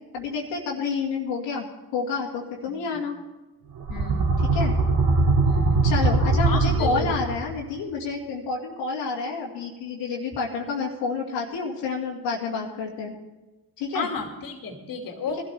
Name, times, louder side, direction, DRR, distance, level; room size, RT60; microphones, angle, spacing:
voice 1, 0.1-1.7 1.9-3.2 4.5-4.7 5.8-13.1 13.8-14.1, left 4 dB, 75° left, -2 dB, 2.2 m, -29 dB
sound 1, 3.7-7.5, right 3 dB, 55° right, 2.3 m, -21 dB
voice 2, 3.9-4.3 5.4-5.8 6.5-7.1 13.9-15.4, left 4 dB, 50° left, 3 dB, 2.4 m, -32 dB
19.5 x 12.5 x 3.4 m, 1.1 s
hypercardioid pair, 60°, 44 cm